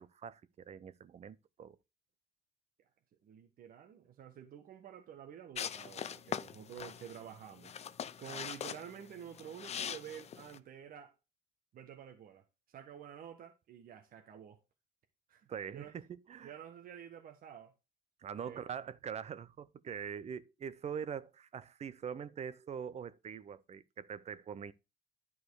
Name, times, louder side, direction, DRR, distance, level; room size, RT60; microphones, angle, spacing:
voice 1, 0.0-1.8 15.5-16.6 18.2-24.7, right 7 dB, 40° right, 0.7 m, -43 dB
voice 2, 3.2-7.7 8.2-11.1 11.7-14.6 15.3-15.9 16.4-17.7 18.4-18.6, right 9 dB, 60° right, 1.4 m, -50 dB
sound 1, 5.6-10.6, left 8 dB, 40° left, 0.6 m, -42 dB
11.0 x 4.7 x 4.7 m
cardioid pair, 110°, 17 cm